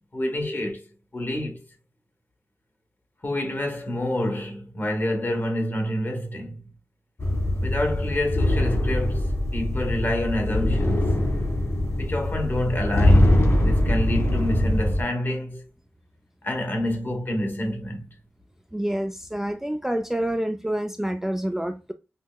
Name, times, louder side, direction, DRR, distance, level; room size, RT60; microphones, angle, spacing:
voice 1, 0.1-0.9 1.1-1.6 3.2-6.7 7.6-11.3 12.0-15.6 16.4-18.1, left 1 dB, 35° left, 1.2 m, -28 dB
sound 1, 7.2-15.0, left 1 dB, 55° left, 1.7 m, -22 dB
voice 2, 18.7-21.9, right 1 dB, 5° right, 0.4 m, -27 dB
5.4 x 2.1 x 2.3 m
wide cardioid pair, 65°, 6 cm